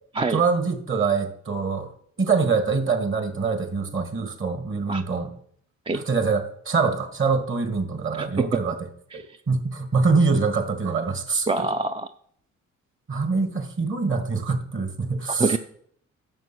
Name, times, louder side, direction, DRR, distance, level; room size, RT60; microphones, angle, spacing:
voice 1, 0.3-1.9 2.2-5.3 5.9-8.8 9.1-11.7 13.1-15.6, right 4 dB, 40° right, 8 dB, 1.9 m, -24 dB
voice 2, 11.5-12.1 15.4-15.6, right 3 dB, 20° right, 8 dB, 0.5 m, -24 dB
11.0 x 7.3 x 6.1 m, 0.65 s
cardioid pair, 90°, 30 cm